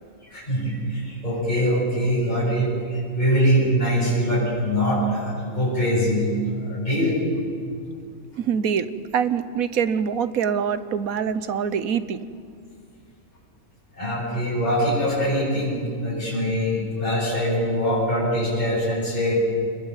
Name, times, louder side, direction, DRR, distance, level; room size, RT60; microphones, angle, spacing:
voice 1, 0.3-6.3 6.6-7.2 13.9-19.4, equal, 30° left, -7 dB, 8.2 m, -23 dB
voice 2, 8.4-12.3, right 7 dB, 80° right, 13 dB, 1.5 m, -24 dB
27.0 x 21.5 x 8.3 m, 2.3 s
omnidirectional pair, 1.5 m